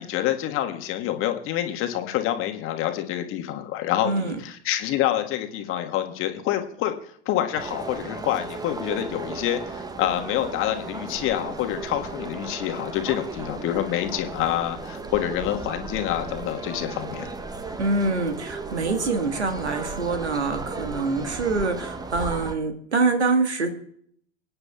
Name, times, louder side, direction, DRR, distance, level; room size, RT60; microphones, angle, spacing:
voice 1, 0.0-6.9 7.2-17.3, left 12 dB, 40° left, 5 dB, 1.5 m, -27 dB
voice 2, 4.0-4.3 17.8-23.7, right 3 dB, 80° right, 7 dB, 1.7 m, -25 dB
sound 1, 7.5-22.5, right 3 dB, 10° right, 0.8 m, -35 dB
24.5 x 9.6 x 2.3 m, 0.64 s
figure-of-eight pair, 80°, 33 cm